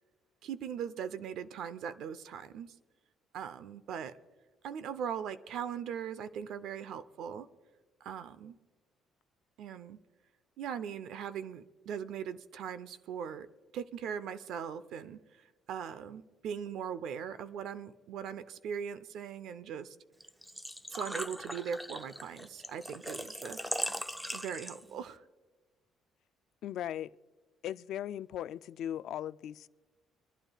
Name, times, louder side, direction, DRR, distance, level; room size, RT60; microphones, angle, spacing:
voice 1, 0.4-2.7 3.3-4.1 4.6-7.5 8.0-8.5 9.6-10.0 10.6-13.5 13.7-15.2 15.7-20.0 20.9-23.6 24.3-25.2, right 8 dB, 65° right, 14 dB, 0.7 m, -40 dB
Engine / Trickle dribble / Fill (with liquid), 20.2-25.0, equal, 5° right, 0.5 m, -39 dB
voice 2, 26.6-27.1 27.6-29.7, left 11 dB, 65° left, 15 dB, 0.3 m, -38 dB
26.0 x 11.5 x 2.3 m, 1.4 s
cardioid pair, 150°, 0 cm